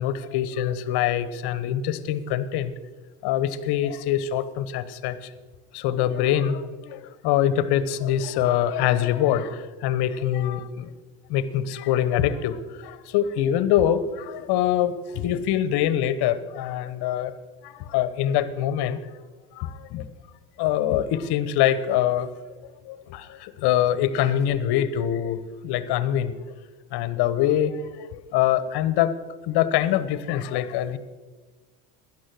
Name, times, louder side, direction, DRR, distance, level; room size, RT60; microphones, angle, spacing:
voice 1, 0.0-2.7 3.2-5.3 5.7-10.9 11.3-17.3 17.6-19.0 19.6-20.1 20.6-22.3 22.9-26.5 26.9-29.2 29.4-31.0, left 11 dB, 60° left, 15 dB, 1.0 m, -24 dB
13.0 x 10.0 x 6.2 m, 1.3 s
hypercardioid pair, 75°, 46 cm